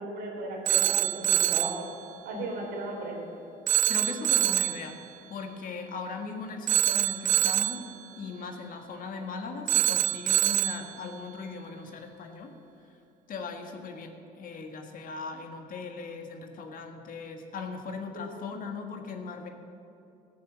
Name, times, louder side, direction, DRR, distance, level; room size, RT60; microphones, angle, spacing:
voice 1, 0.0-1.8 2.2-3.2 18.1-18.3, right 2 dB, 75° right, -1 dB, 3.7 m, -36 dB
Telephone, 0.7-1.8 3.7-4.8 6.7-7.8 9.7-10.8, right 13 dB, 50° right, 0.4 m, -25 dB
voice 2, 3.9-4.9 5.3-7.8 8.2-12.5 13.3-19.5, left 4 dB, 55° left, 4 dB, 1.6 m, -39 dB
14.5 x 8.4 x 7.4 m, 2.7 s
cardioid pair, 110°, 17 cm